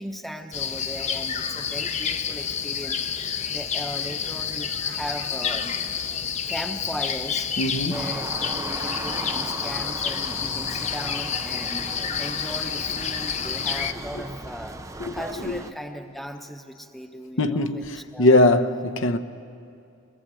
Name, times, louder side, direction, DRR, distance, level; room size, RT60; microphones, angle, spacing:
voice 1, 0.0-5.7 6.5-7.5 7.9-11.9 12.2-14.8 15.1-18.4, equal, ahead, 0.9 m, -37 dB
sound 1, 0.5-13.9, left 7 dB, 35° left, 0.7 m, -29 dB
voice 2, 7.6-8.0 14.1-14.2 15.0-15.2 15.4-15.6 17.4-19.2, left 2 dB, 75° left, 0.9 m, -21 dB
sound 2, 7.9-15.7, right 2 dB, 15° right, 0.6 m, -37 dB
22.0 x 21.0 x 7.7 m
head